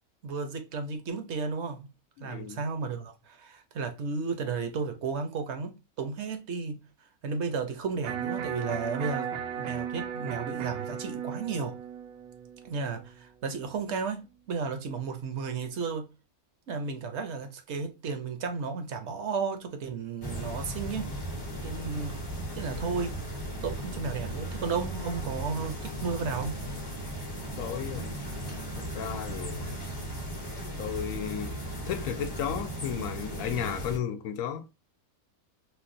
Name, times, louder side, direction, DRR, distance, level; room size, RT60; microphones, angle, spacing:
voice 1, 0.2-1.9 2.2-6.8 7.2-11.8 12.6-16.1 16.7-21.1 21.6-22.2 22.5-23.2 23.6-26.6, right 5 dB, 60° right, 0.9 m, -33 dB
voice 2, 2.2-2.6 27.6-28.2 28.8-29.7 30.8-31.6 31.9-34.7, left 8 dB, 70° left, 0.9 m, -34 dB
Electric guitar, 8.0-14.1, right 8 dB, 80° right, 1.0 m, -36 dB
sound 1, 20.2-34.0, equal, 25° left, 0.5 m, -36 dB
4.0 x 2.2 x 2.5 m
omnidirectional pair, 1.5 m